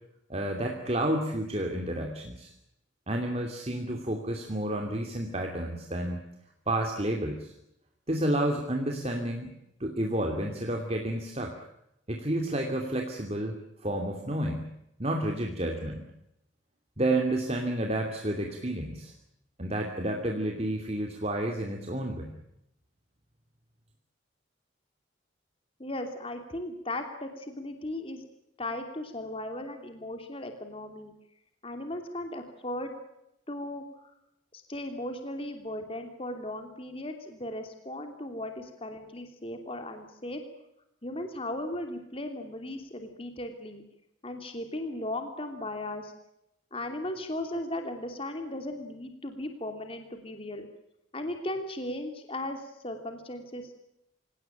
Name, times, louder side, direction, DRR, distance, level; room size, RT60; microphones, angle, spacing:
voice 1, 0.3-2.5 3.1-6.2 6.7-7.5 8.1-9.5 9.8-11.5 12.1-14.7 15.0-16.0 17.0-19.1 19.6-22.3, right 1 dB, 30° right, 2 dB, 2.7 m, -30 dB
voice 2, 25.8-28.3 28.6-31.1 31.6-32.9 33.5-33.8 34.5-40.4 41.0-43.8 44.2-46.1 46.7-50.7 51.1-53.7, left 1 dB, 30° left, 5 dB, 3.0 m, -37 dB
27.0 x 18.0 x 9.0 m, 0.82 s
head